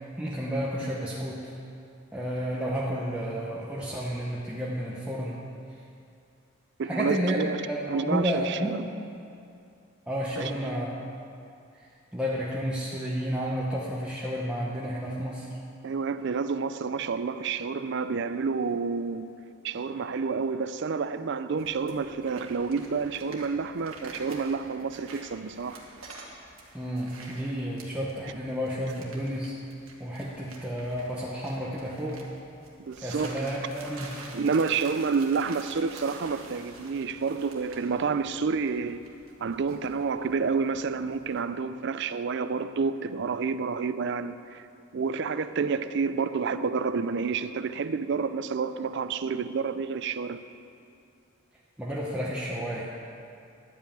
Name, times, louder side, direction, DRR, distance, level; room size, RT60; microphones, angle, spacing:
voice 1, 0.2-1.5 2.1-5.4 6.8-8.8 10.1-10.9 12.1-15.5 26.7-29.5 30.0-32.2 33.0-34.1 51.8-52.9, equal, 5° right, -6 dB, 0.8 m, -31 dB
voice 2, 6.8-8.8 10.4-10.5 15.8-19.3 19.6-25.8 28.3-28.4 32.9-33.3 34.3-39.0 39.4-44.7 44.9-50.4, right 5 dB, 55° right, 12 dB, 0.4 m, -29 dB
sound 1, 21.6-41.4, right 2 dB, 85° right, 1.6 m, -48 dB
11.5 x 5.4 x 8.7 m, 2.5 s
head